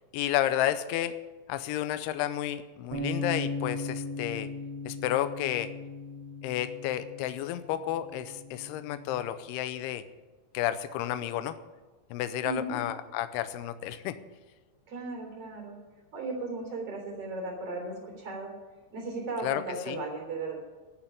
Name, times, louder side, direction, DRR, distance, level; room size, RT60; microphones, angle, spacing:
voice 1, 0.1-1.2 1.5-4.5 4.9-5.7 6.4-10.0 10.5-11.6 12.1-14.2 19.4-20.0, left 12 dB, 85° left, 12 dB, 2.4 m, -31 dB
sound 1, 2.9-9.2, left 2 dB, 70° right, 4.6 m, -38 dB
voice 2, 12.4-12.7 14.9-15.8 16.1-18.5 18.9-20.6, right 3 dB, 35° right, 0 dB, 4.2 m, -36 dB
12.5 x 7.2 x 9.9 m, 1.3 s
omnidirectional pair, 5.2 m